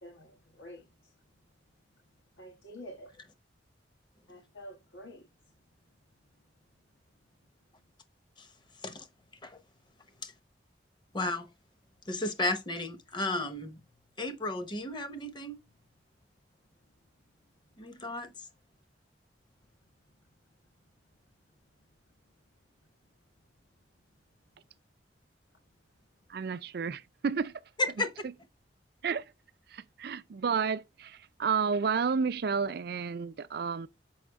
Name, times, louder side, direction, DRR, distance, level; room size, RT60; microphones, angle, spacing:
voice 1, 0.0-0.8 2.4-3.1 4.3-5.3, equal, 90° left, 1.3 m, -48 dB
voice 2, 11.1-11.5 12.1-13.8 14.2-15.6 17.8-18.3 27.8-28.1, left 2 dB, 25° left, 0.8 m, -33 dB
voice 3, 26.3-27.5 29.0-29.3 29.7-33.9, right 5 dB, 60° right, 0.5 m, -31 dB
6.3 x 5.0 x 3.6 m
head